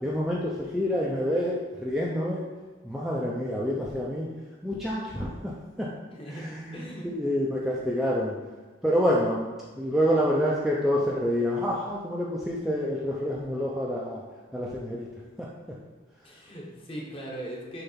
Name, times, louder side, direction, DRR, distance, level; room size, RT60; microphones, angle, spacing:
voice 1, 0.0-2.4 2.8-4.3 4.6-5.9 6.3-8.4 8.8-9.5 9.8-14.2 14.5-15.1 15.4-15.5, equal, ahead, -5 dB, 0.6 m, -27 dB
voice 2, 6.2-6.5 6.7-7.1 16.2-17.8, right 1 dB, 30° left, -2 dB, 1.2 m, -39 dB
6.9 x 3.4 x 5.7 m, 1.3 s
head